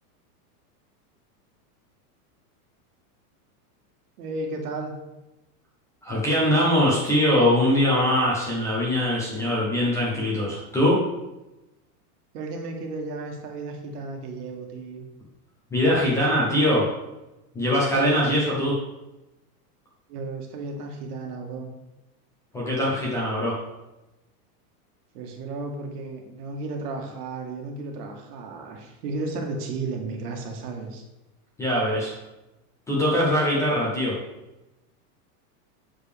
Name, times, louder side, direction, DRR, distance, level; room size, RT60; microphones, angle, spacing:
voice 1, 4.2-5.0 12.3-15.0 17.9-18.5 20.1-21.7 25.1-31.0, right 3 dB, 75° right, 3 dB, 1.5 m, -33 dB
voice 2, 6.0-11.0 15.7-16.9 17.5-18.7 22.5-23.6 31.6-32.2 32.9-34.2, left 1 dB, 5° left, -6 dB, 0.4 m, -22 dB
6.8 x 4.9 x 3.4 m, 0.99 s
supercardioid pair, 155°, 47 cm